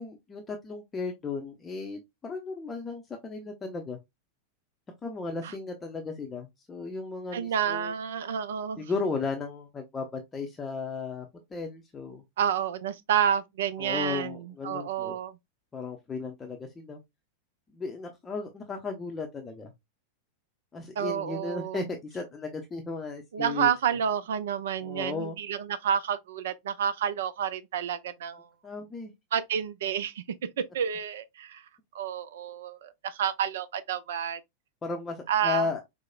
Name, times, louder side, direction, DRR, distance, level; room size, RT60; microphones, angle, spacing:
voice 1, 0.0-4.0 5.0-7.9 8.8-12.2 13.8-15.2 15.7-17.0 17.7-19.7 20.7-23.7 24.8-25.4 28.6-29.1 34.8-35.8, left 4 dB, 15° left, 0.6 m, -35 dB
voice 2, 7.3-8.9 12.4-14.3 14.6-15.3 21.0-21.8 23.3-28.5 29.3-30.2 30.7-31.6 31.9-34.4 35.3-35.7, right 8 dB, 60° right, 0.4 m, -29 dB
4.6 x 2.0 x 2.2 m
figure-of-eight pair, 90°, 0 cm